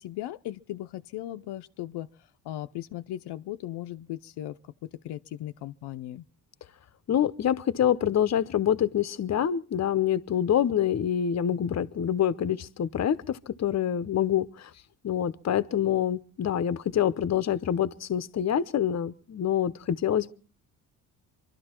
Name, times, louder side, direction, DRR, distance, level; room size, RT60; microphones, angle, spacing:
voice 1, 0.0-2.1 2.4-6.2, left 13 dB, 80° left, 0.7 m, -37 dB
voice 2, 7.1-14.7 15.0-20.3, left 9 dB, 40° left, 0.8 m, -26 dB
25.0 x 12.0 x 4.4 m
cardioid pair, 85°, 40 cm